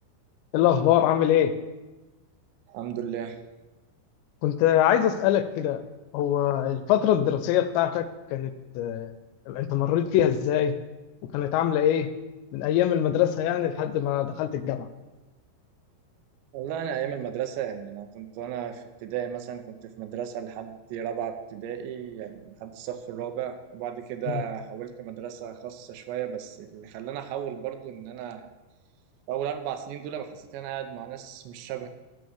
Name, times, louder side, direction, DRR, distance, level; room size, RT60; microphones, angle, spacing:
voice 1, 0.5-1.5 4.4-5.8 6.1-8.1 8.3-9.1 9.5-10.7 11.3-12.1 12.5-14.9 24.3-24.4, left 11 dB, 85° left, 11 dB, 2.7 m, -23 dB
voice 2, 2.7-3.4 16.5-28.5 29.3-31.9, right 9 dB, 90° right, 7 dB, 2.9 m, -34 dB
6.8 x 6.3 x 6.3 m, 1.1 s
omnidirectional pair, 5.1 m